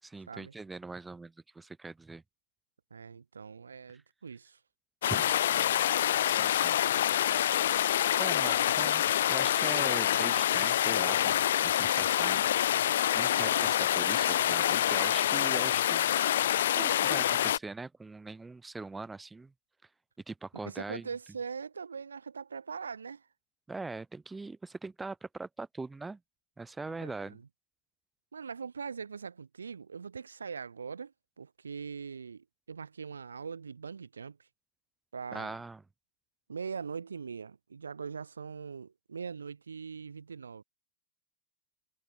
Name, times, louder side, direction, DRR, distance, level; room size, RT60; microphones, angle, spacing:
voice 1, 0.0-2.2 5.1-5.6 6.2-6.8 8.2-12.5 13.1-16.1 16.7-19.5 20.3-21.1 23.7-26.2 26.6-27.4 35.3-35.8, right 3 dB, 10° right, 6.4 m, -41 dB
voice 2, 2.9-4.6 20.6-23.3 26.8-27.5 28.3-34.5 35.1-35.6 36.5-40.6, right 5 dB, 75° right, 5.8 m, -42 dB
sound 1, 5.0-17.6, left 11 dB, 60° left, 0.6 m, -26 dB
figure-of-eight pair, 90°, 0 cm